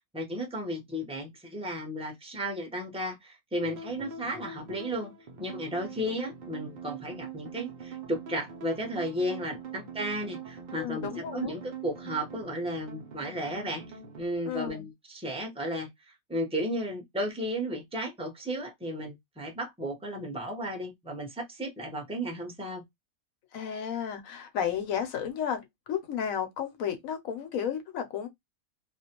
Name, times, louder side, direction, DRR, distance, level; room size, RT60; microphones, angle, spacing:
voice 1, 0.1-5.1 5.4-13.8 14.2-15.9 16.3-22.8, equal, 5° right, 0.5 m, -34 dB
sound 1, 3.6-14.2, right 6 dB, 80° right, 0.4 m, -43 dB
voice 2, 10.8-11.5 14.5-14.9 23.5-28.3, left 8 dB, 70° left, 1.0 m, -33 dB
2.5 x 2.1 x 2.8 m
omnidirectional pair, 1.5 m